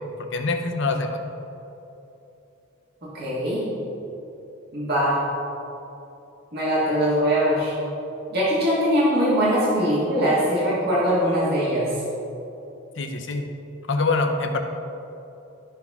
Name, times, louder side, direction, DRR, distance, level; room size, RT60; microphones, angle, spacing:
voice 1, 0.3-1.2 13.0-13.5 13.9-14.6, left 3 dB, 60° left, 5 dB, 0.8 m, -24 dB
voice 2, 3.0-3.6 4.7-5.2 6.5-7.7 8.3-11.9, equal, 50° right, -7 dB, 1.7 m, -22 dB
12.5 x 5.6 x 3.6 m, 2.9 s
head